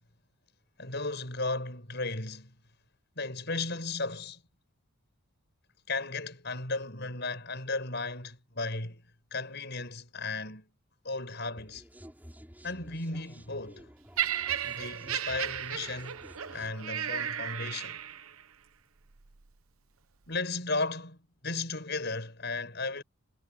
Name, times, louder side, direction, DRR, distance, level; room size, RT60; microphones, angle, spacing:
voice 1, 0.8-2.5 3.2-4.4 5.9-9.0 9.3-10.7 11.0-11.8 12.6-13.9 14.6-16.2 16.5-18.0 20.3-23.0, left 3 dB, 50° left, 7.2 m, -35 dB
sound 1, 11.6-16.7, equal, 10° right, 5.2 m, -52 dB
Laughter, 14.2-18.4 19.2-19.4, right 9 dB, 80° right, 0.9 m, -34 dB
head